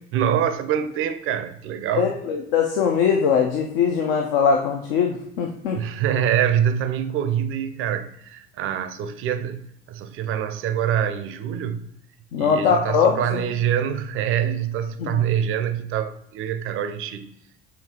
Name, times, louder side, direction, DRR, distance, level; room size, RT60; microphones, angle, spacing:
voice 1, 0.0-2.1 5.7-11.9 12.4-17.3, right 9 dB, 45° right, 0.5 m, -25 dB
voice 2, 1.9-5.8 12.3-13.4 15.0-15.2, left 6 dB, 65° left, 0.5 m, -21 dB
6.5 x 2.8 x 2.8 m
figure-of-eight pair, 50°, 29 cm